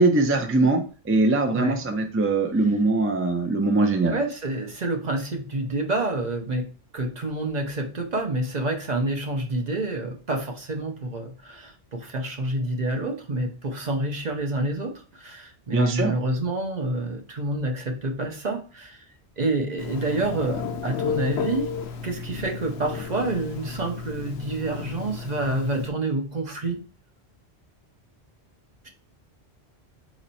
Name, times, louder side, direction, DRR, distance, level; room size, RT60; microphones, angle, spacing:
voice 1, 0.0-4.2 15.7-16.1, right 2 dB, 15° right, 3 dB, 0.5 m, -22 dB
voice 2, 4.1-6.7 6.9-19.0 19.4-21.7 22.0-26.8, right 2 dB, 45° right, 4 dB, 0.7 m, -28 dB
Telephone, 19.8-25.9, left 6 dB, 85° left, 0.9 m, -33 dB
4.1 x 3.0 x 4.0 m, 0.35 s
omnidirectional pair, 1.1 m